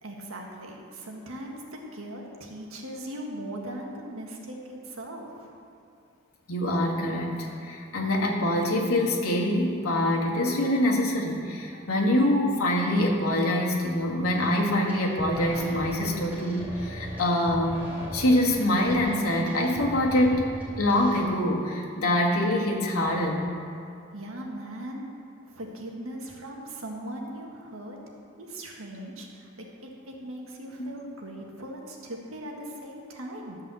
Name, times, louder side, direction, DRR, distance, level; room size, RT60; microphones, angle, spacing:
voice 1, 0.0-5.5 24.1-25.1 25.4-28.0 28.4-33.6, right 1 dB, 75° right, 0 dB, 1.7 m, -39 dB
voice 2, 6.5-17.7 18.1-20.5 20.8-23.5 30.8-30.9, left 1 dB, 90° left, -2 dB, 1.8 m, -25 dB
sound 1, 14.3-14.6 14.9-21.2, left 1 dB, 10° right, 2.9 m, -39 dB
12.5 x 5.5 x 7.6 m, 2.6 s
head